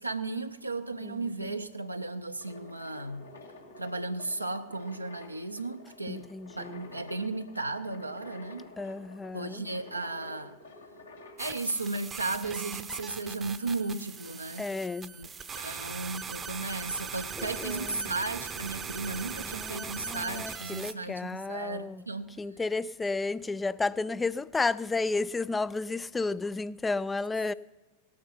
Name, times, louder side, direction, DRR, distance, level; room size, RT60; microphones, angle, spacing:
voice 1, 0.0-3.3 3.8-6.3 6.5-8.7 9.3-10.6 11.4-14.7 15.1-15.3 15.6-22.3, right 3 dB, 85° right, 0.6 m, -35 dB
sound 1, 2.4-11.4, left 2 dB, 75° left, 2.5 m, -50 dB
voice 2, 6.1-6.8 8.8-9.6 14.6-15.1 17.4-17.8 19.6-22.0 22.4-27.5, left 3 dB, 10° left, 0.3 m, -32 dB
sound 2, 11.4-20.9, right 6 dB, 20° right, 0.7 m, -40 dB
18.0 x 8.6 x 5.6 m
figure-of-eight pair, 90°, 0 cm